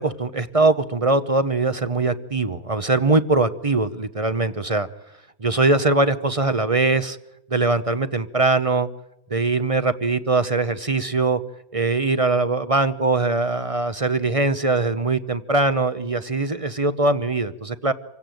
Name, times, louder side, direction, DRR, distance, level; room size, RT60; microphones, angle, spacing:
voice 1, 0.0-4.9 5.4-7.2 7.5-8.9 9.3-11.4 11.7-17.9, right 3 dB, 30° right, 12 dB, 0.8 m, -21 dB
27.0 x 17.0 x 9.2 m, 0.89 s
omnidirectional pair, 1.5 m